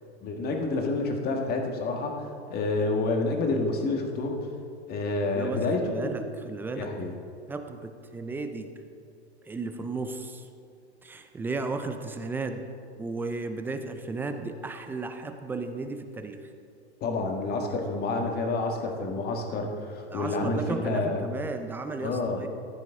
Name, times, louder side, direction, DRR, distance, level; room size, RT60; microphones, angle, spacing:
voice 1, 0.2-4.5 4.9-6.1 6.7-7.1 17.0-21.2 22.0-22.4, left 3 dB, 30° left, 3 dB, 1.6 m, -29 dB
voice 2, 5.3-6.9 7.5-8.7 9.5-10.5 11.0-12.7 13.0-16.4 20.1-22.5, right 3 dB, 5° right, 7 dB, 0.3 m, -34 dB
14.5 x 9.5 x 3.8 m, 2.5 s
hypercardioid pair, 115°, 34 cm